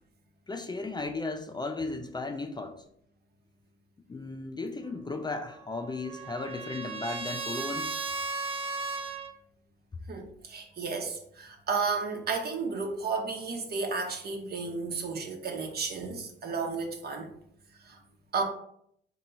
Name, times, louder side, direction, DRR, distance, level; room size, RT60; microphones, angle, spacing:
voice 1, 0.5-2.8 4.1-7.9, left 3 dB, 20° left, 0.4 m, -35 dB
Trumpet, 5.4-9.3, right 3 dB, 30° right, 0.5 m, -36 dB
voice 2, 10.1-17.3 17.9-18.0 18.3-18.4, right 4 dB, 50° right, 1.0 m, -33 dB
4.4 x 3.0 x 3.9 m
cardioid pair, 90°, 20 cm